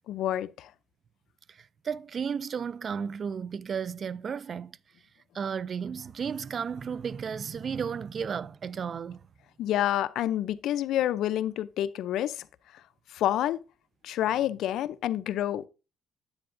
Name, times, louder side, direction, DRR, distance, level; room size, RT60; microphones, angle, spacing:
voice 1, 0.1-0.7 9.6-12.5 13.1-13.6 14.0-15.7, left 12 dB, 80° left, 0.5 m, -28 dB
voice 2, 1.5-4.7 5.3-9.2, right 6 dB, 50° right, 0.3 m, -33 dB
9.7 x 8.6 x 2.6 m
cardioid pair, 90°, 0 cm